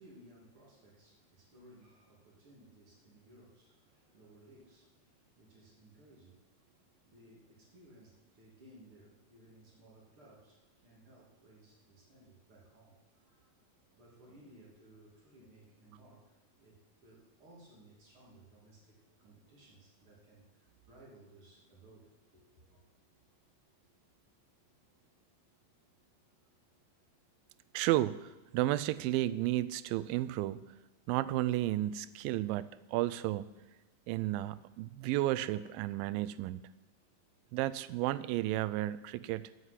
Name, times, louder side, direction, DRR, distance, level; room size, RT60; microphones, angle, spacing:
voice 1, 0.0-6.5 7.0-13.5 13.9-22.9, right 1 dB, 40° right, -3 dB, 3.2 m, -60 dB
voice 2, 27.7-30.6 31.1-33.6 34.1-36.6 37.5-39.5, right 15 dB, 90° right, 16 dB, 2.3 m, -32 dB
12.5 x 8.0 x 8.2 m, 1.1 s
omnidirectional pair, 4.0 m